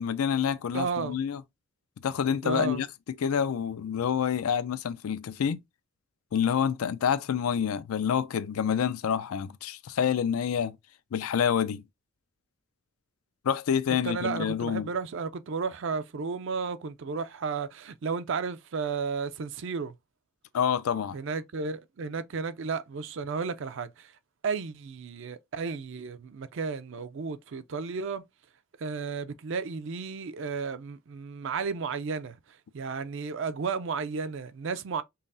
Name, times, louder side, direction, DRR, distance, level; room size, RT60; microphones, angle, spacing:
voice 1, 0.0-1.4 2.0-2.9 3.2-5.6 6.3-10.8 11.1-11.8 13.4-14.9 20.5-21.2, left 8 dB, 85° left, 0.4 m, -27 dB
voice 2, 0.7-1.2 2.4-2.8 14.0-19.9 21.1-24.1 24.4-28.2 28.8-32.3 32.7-35.0, right 5 dB, 60° right, 0.4 m, -33 dB
5.4 x 2.0 x 2.6 m
head